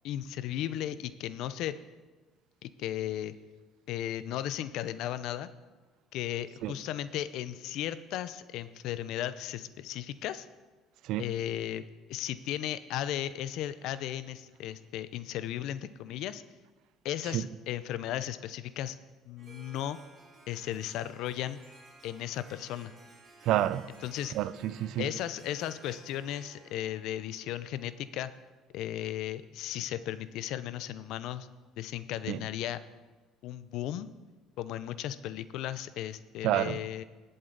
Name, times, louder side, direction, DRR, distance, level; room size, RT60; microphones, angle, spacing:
voice 1, 0.0-1.7 2.6-3.3 3.9-5.5 6.1-10.5 11.2-16.4 17.0-19.0 19.3-20.0 20.5-21.6 22.0-22.9 24.0-24.3 25.0-28.3 28.7-31.5 31.8-32.8 33.4-34.1 34.6-37.0, left 12 dB, 70° left, 0.6 m, -35 dB
Harp, 19.4-28.1, right 2 dB, 35° right, 4.2 m, -56 dB
voice 2, 23.4-23.9 24.3-25.1 32.3-32.4 36.4-36.8, right 13 dB, 70° right, 0.5 m, -29 dB
20.0 x 7.8 x 4.0 m
supercardioid pair, 85°, 0 cm